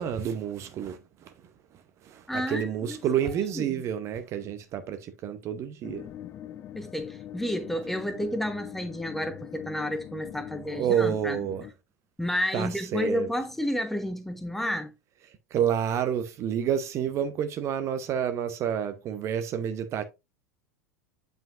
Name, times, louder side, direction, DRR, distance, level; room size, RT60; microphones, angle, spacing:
voice 1, 0.0-6.1 10.7-11.7 12.5-13.3 15.3-20.1, right 9 dB, 35° right, 0.8 m, -29 dB
voice 2, 2.3-3.0 3.5-3.7 6.7-11.4 12.2-14.9, equal, 5° left, 1.2 m, -31 dB
sound 1, 5.8-11.7, left 11 dB, 30° left, 0.4 m, -42 dB
9.0 x 5.2 x 2.5 m
figure-of-eight pair, 80°, 8 cm